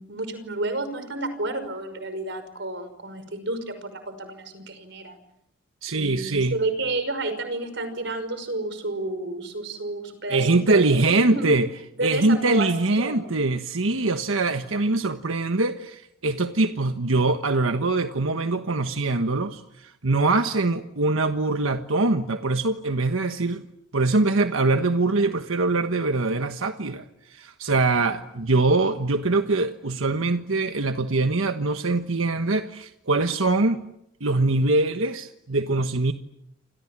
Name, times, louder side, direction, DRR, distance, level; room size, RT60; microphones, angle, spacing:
voice 1, 0.0-5.2 6.0-11.5 12.0-13.3, right 2 dB, 60° right, 10 dB, 5.7 m, -31 dB
voice 2, 5.8-6.6 10.3-11.7 12.0-23.6 23.9-27.0 27.3-33.8 34.2-36.1, right 3 dB, 85° right, 8 dB, 1.3 m, -23 dB
29.0 x 26.5 x 7.5 m, 0.79 s
head